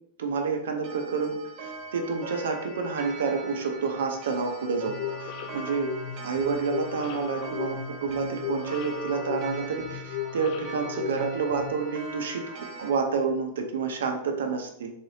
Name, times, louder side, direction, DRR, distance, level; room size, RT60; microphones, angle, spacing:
voice 1, 0.2-5.9 6.2-14.9, right 5 dB, 85° right, 4 dB, 0.7 m, -29 dB
Clock, 0.8-12.9, right 3 dB, 45° right, 0.8 m, -42 dB
sound 1, 4.9-11.8, left 8 dB, 55° left, 0.5 m, -36 dB
3.6 x 3.4 x 2.8 m, 0.74 s
hypercardioid pair, 130°, 0 cm